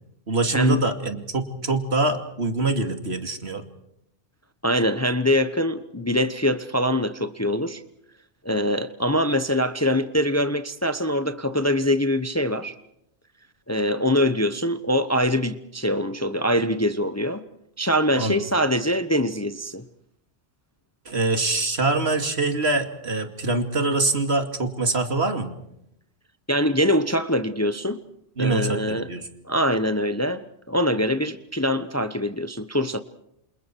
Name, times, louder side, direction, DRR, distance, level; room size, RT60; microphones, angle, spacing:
voice 1, 0.3-3.6 18.2-18.4 21.1-25.5 28.4-29.3, right 3 dB, 65° right, 2.8 m, -24 dB
voice 2, 4.6-7.8 8.4-12.7 13.7-17.4 17.8-19.8 26.5-28.0 28.4-29.1 29.5-30.4 30.7-33.0, equal, 15° left, 0.9 m, -23 dB
28.5 x 28.0 x 4.6 m
omnidirectional pair, 1.2 m